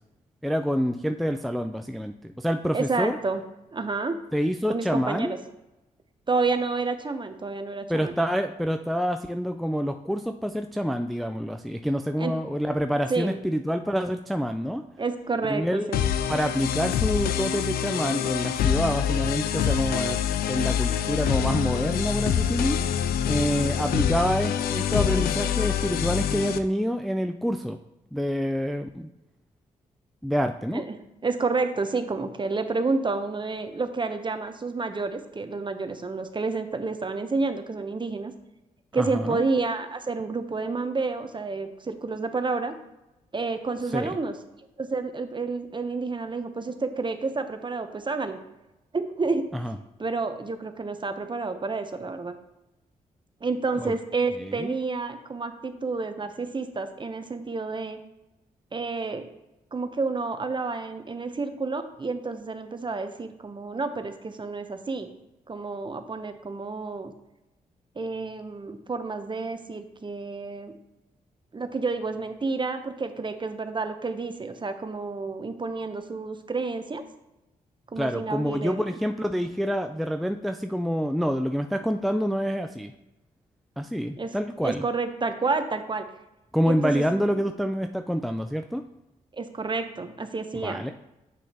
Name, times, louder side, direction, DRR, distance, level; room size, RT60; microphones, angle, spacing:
voice 1, 0.4-3.2 4.3-5.4 7.9-14.8 15.5-15.9 16.3-20.2 20.5-22.8 23.3-27.8 28.1-29.1 30.2-30.8 38.9-39.4 43.9-44.2 49.5-49.8 53.8-53.9 54.4-54.7 78.0-82.9 83.8-84.8 86.5-88.8 90.6-90.9, equal, ahead, 6 dB, 0.4 m, -27 dB
voice 2, 2.7-3.4 3.7-4.2 4.7-5.4 6.3-8.1 12.2-12.4 13.1-13.4 15.0-16.0 30.7-31.0 31.2-38.3 38.9-42.8 43.3-44.3 44.8-48.4 48.9-49.5 50.0-52.4 53.4-58.0 58.7-59.3 59.7-65.1 65.5-67.1 68.0-70.7 71.5-77.0 77.9-78.8 84.2-84.3 84.6-86.1 86.6-87.2 89.3-90.8, right 3 dB, 30° right, 8 dB, 0.8 m, -29 dB
sound 1, 15.9-26.6, left 9 dB, 85° left, 0.4 m, -26 dB
7.8 x 6.0 x 2.9 m, 0.94 s
supercardioid pair, 50°, 15 cm